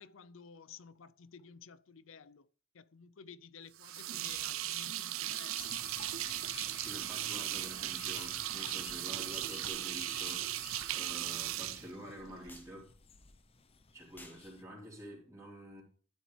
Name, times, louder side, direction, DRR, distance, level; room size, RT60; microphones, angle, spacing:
voice 1, 0.0-2.5 2.7-5.8, left 6 dB, 70° left, 0.6 m, -53 dB
sound 1, 3.8-12.6, right 14 dB, 75° right, 0.5 m, -38 dB
sound 2, 5.6-14.6, left 5 dB, 30° left, 0.7 m, -53 dB
voice 2, 6.7-12.9 13.9-15.8, equal, 15° right, 3.7 m, -48 dB
sound 3, 7.2-7.4 8.5-8.6 9.6-9.9 11.0-11.2 12.5-12.7 14.1-14.4, left 2 dB, 10° left, 1.2 m, -54 dB
12.0 x 6.2 x 3.3 m
head